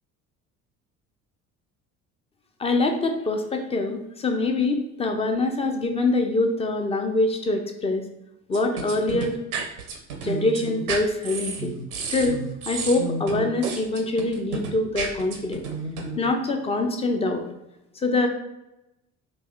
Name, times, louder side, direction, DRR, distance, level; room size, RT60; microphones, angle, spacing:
voice 1, 2.6-8.0 8.5-9.3 10.2-11.7 12.1-15.6 16.2-17.4 18.0-18.3, left 2 dB, 15° left, 4 dB, 0.4 m, -24 dB
sound 1, 8.5-16.2, right 4 dB, 85° right, 0.6 m, -31 dB
3.9 x 2.3 x 2.4 m, 0.92 s
figure-of-eight pair, 55°, 43 cm